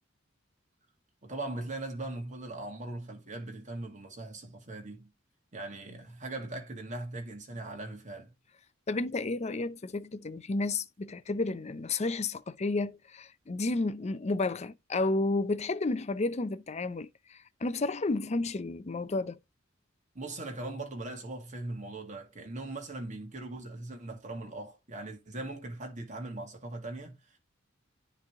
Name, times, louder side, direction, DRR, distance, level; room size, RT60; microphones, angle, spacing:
voice 1, 1.2-5.1 5.5-8.3 20.1-27.4, right 2 dB, 40° right, 1.9 m, -40 dB
voice 2, 8.9-19.4, left 2 dB, 35° left, 0.5 m, -31 dB
9.8 x 3.3 x 3.5 m
head